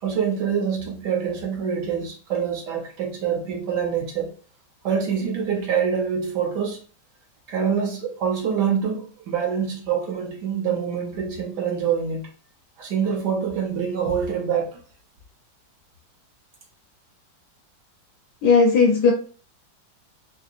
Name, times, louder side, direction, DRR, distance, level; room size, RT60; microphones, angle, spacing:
voice 1, 0.0-4.3 4.8-6.8 7.5-12.3 12.8-14.7, right 7 dB, 70° right, 1.2 m, -25 dB
voice 2, 18.4-19.1, left 4 dB, 70° left, 1.0 m, -16 dB
3.6 x 2.8 x 2.4 m
omnidirectional pair, 2.1 m